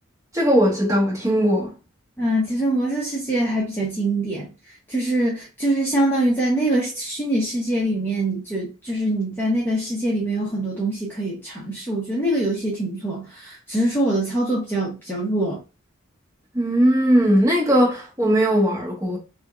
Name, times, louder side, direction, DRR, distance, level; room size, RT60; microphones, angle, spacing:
voice 1, 0.3-1.7 16.5-19.2, equal, 15° right, 1.5 m, -19 dB
voice 2, 2.2-4.5 4.9-15.6, right 1 dB, 10° left, 0.7 m, -24 dB
3.5 x 2.7 x 2.3 m
head